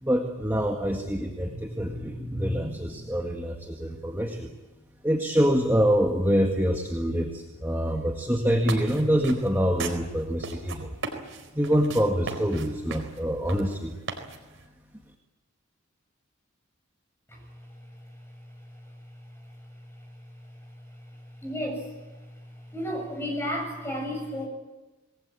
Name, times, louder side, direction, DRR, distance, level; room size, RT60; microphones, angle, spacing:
voice 1, 0.0-4.5 5.0-11.0 11.5-14.0, equal, 10° right, 1 dB, 1.7 m, -25 dB
sound 1, 8.5-14.7, right 3 dB, 60° right, 4.4 m, -38 dB
voice 2, 21.4-21.9 22.7-24.5, equal, 10° left, 2 dB, 7.8 m, -32 dB
27.0 x 20.0 x 8.8 m, 1.1 s
head